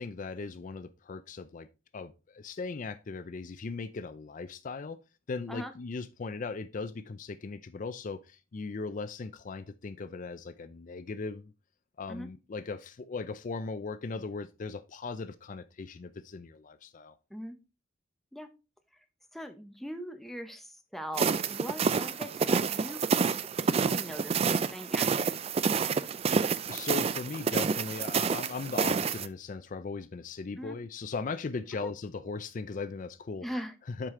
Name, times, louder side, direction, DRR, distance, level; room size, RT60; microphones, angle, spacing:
voice 1, 0.0-1.7 1.9-5.0 5.3-11.5 12.0-17.2 26.3-33.5 33.9-34.1, left 4 dB, 40° left, 0.4 m, -38 dB
voice 2, 19.3-23.0 23.6-25.4 30.6-30.8 33.4-33.7, equal, ahead, 0.7 m, -41 dB
sound 1, 21.2-29.3, right 5 dB, 30° right, 0.3 m, -28 dB
7.5 x 4.9 x 3.6 m
head